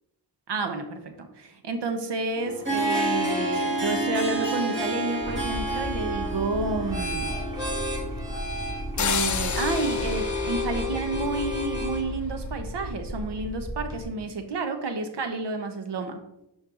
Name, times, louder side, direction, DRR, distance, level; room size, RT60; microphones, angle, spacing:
voice 1, 0.5-7.4 9.0-16.2, right 3 dB, 75° right, 7 dB, 1.1 m, -30 dB
Harp, 2.4-10.1, right 1 dB, 30° right, 2.8 m, -30 dB
sound 1, 5.2-14.0, left 1 dB, 10° right, 2.4 m, -32 dB
sound 2, 9.0-11.8, left 9 dB, 45° left, 0.5 m, -31 dB
11.5 x 4.6 x 3.8 m, 0.89 s
wide cardioid pair, 150°, 42 cm